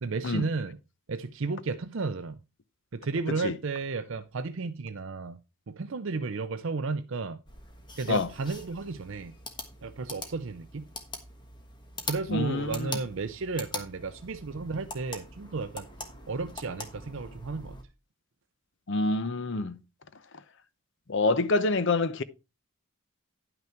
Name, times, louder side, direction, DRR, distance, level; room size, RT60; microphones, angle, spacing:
voice 1, 0.0-0.8 1.1-2.4 2.9-5.4 5.7-7.4 8.0-9.3 9.8-10.9 12.1-15.9 16.3-17.8, right 4 dB, 55° right, 0.5 m, -33 dB
sound 1, 7.5-17.8, left 2 dB, 20° left, 1.3 m, -43 dB
voice 2, 12.3-13.0 18.9-19.8 21.1-22.2, left 3 dB, 55° left, 0.7 m, -27 dB
10.5 x 5.9 x 4.5 m
head